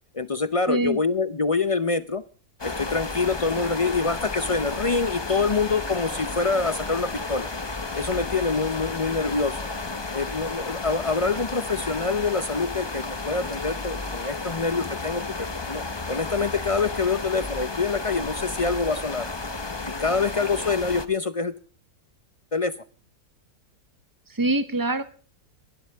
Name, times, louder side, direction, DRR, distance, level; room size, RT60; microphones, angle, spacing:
voice 1, 0.1-2.2 2.6-7.5 7.9-9.7 10.1-19.3 19.9-21.6 22.5-22.7, left 4 dB, 50° left, 15 dB, 0.4 m, -26 dB
voice 2, 0.7-1.0 24.3-25.0, right 2 dB, 35° right, 12 dB, 0.3 m, -24 dB
sound 1, 2.6-21.1, left 3 dB, 20° left, 0.8 m, -32 dB
22.5 x 12.0 x 3.5 m, 0.40 s
omnidirectional pair, 1.7 m